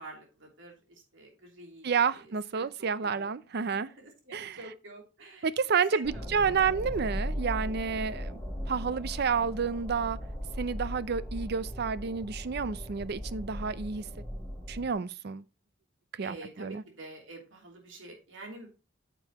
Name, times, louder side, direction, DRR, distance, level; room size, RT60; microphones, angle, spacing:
voice 1, 0.0-3.3 3.8-5.5 5.9-6.4 16.2-18.7, right 2 dB, 80° right, 3.0 m, -48 dB
voice 2, 1.8-3.9 4.3-4.6 5.4-8.3 8.7-10.2 10.6-14.0 14.7-15.4 16.2-16.8, right 6 dB, 60° right, 0.5 m, -30 dB
sound 1, 6.0-14.9, equal, 5° left, 3.4 m, -38 dB
9.1 x 6.9 x 2.9 m
head